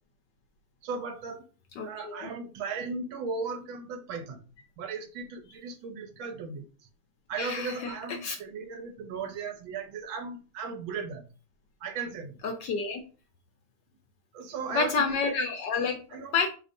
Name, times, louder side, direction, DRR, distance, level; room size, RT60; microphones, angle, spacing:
voice 1, 0.8-1.4 1.8-4.4 4.8-6.7 7.3-11.3 11.8-12.4 14.3-15.2 16.1-16.3, right 4 dB, 75° right, 6 dB, 1.4 m, -36 dB
voice 2, 1.8-2.3 7.4-7.9 8.2-8.3 12.4-13.0 14.7-16.5, left 4 dB, 70° left, 4 dB, 1.1 m, -29 dB
5.2 x 3.4 x 2.6 m, 0.36 s
omnidirectional pair, 2.3 m